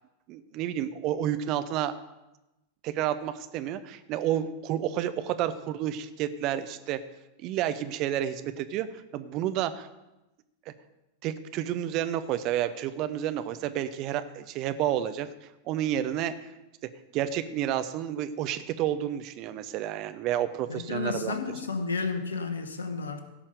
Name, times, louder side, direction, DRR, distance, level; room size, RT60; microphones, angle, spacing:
voice 1, 0.3-2.0 2.8-7.0 7.4-8.9 9.1-9.9 10.7-10.8 11.2-15.3 15.6-16.5 17.1-21.3, right 11 dB, 40° right, 11 dB, 0.8 m, -30 dB
voice 2, 20.7-23.2, left 4 dB, 70° left, 9 dB, 1.2 m, -32 dB
16.0 x 5.6 x 6.7 m, 0.99 s
figure-of-eight pair, 90°, 0 cm